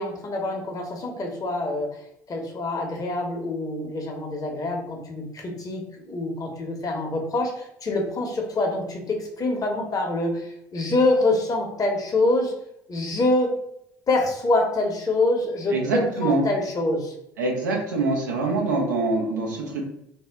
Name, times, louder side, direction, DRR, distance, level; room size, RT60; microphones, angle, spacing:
voice 1, 0.0-1.9 2.3-5.8 6.1-12.5 12.9-13.5 14.1-17.1, left 2 dB, 40° left, 1 dB, 0.9 m, -25 dB
voice 2, 15.7-16.4 17.4-19.8, right 3 dB, 85° right, 0 dB, 0.7 m, -24 dB
2.7 x 2.1 x 3.5 m, 0.77 s
hypercardioid pair, 60°, 10 cm